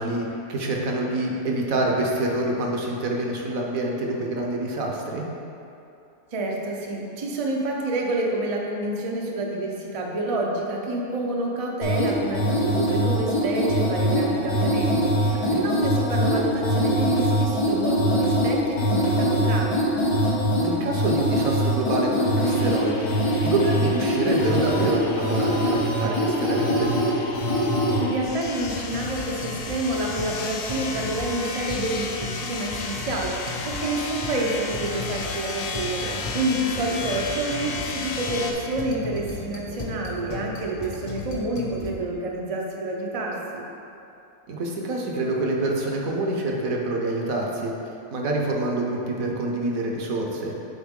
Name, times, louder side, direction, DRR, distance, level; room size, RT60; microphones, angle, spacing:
voice 1, 0.0-5.3 15.4-15.6 20.6-26.9 36.0-36.3 44.5-47.7 48.1-50.5, right 2 dB, 65° right, 0 dB, 1.2 m, -26 dB
voice 2, 6.3-19.8 28.0-43.7, right 2 dB, 45° right, -1 dB, 0.4 m, -28 dB
sound 1, 11.8-28.0, equal, 90° left, 2.0 m, -23 dB
sound 2, 21.9-38.5, left 4 dB, 70° left, 0.9 m, -35 dB
sound 3, 28.3-42.0, left 3 dB, 40° left, 0.4 m, -36 dB
8.3 x 3.9 x 3.6 m, 2.8 s
omnidirectional pair, 1.6 m